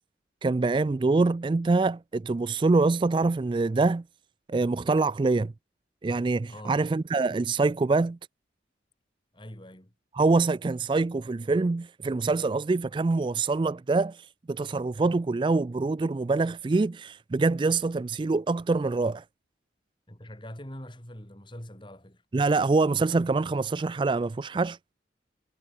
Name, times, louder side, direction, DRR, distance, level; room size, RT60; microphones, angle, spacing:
voice 1, 0.4-4.0 4.5-5.5 6.0-8.2 10.1-19.2 22.3-24.8, right 3 dB, 25° right, 0.3 m, -25 dB
voice 2, 6.5-6.9 9.3-9.9 20.1-22.2, left 1 dB, 25° left, 3.9 m, -43 dB
head